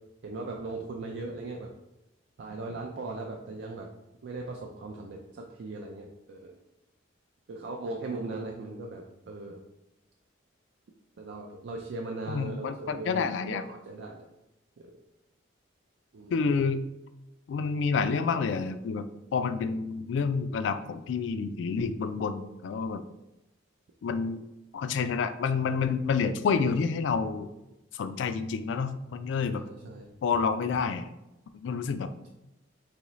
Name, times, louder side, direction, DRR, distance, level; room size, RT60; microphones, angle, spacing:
voice 1, 0.2-1.7 2.4-3.9 4.2-6.5 7.5-9.6 11.2-14.3 14.8-14.9 16.1-16.4 29.6-30.1, right 2 dB, 65° right, 1 dB, 0.4 m, -38 dB
voice 2, 12.3-13.7 16.3-16.8 17.5-23.0 24.0-24.4 24.7-27.5 27.9-29.6 30.2-31.1 31.5-32.1, left 5 dB, 70° left, 10 dB, 0.3 m, -29 dB
3.8 x 3.1 x 3.0 m, 0.94 s
head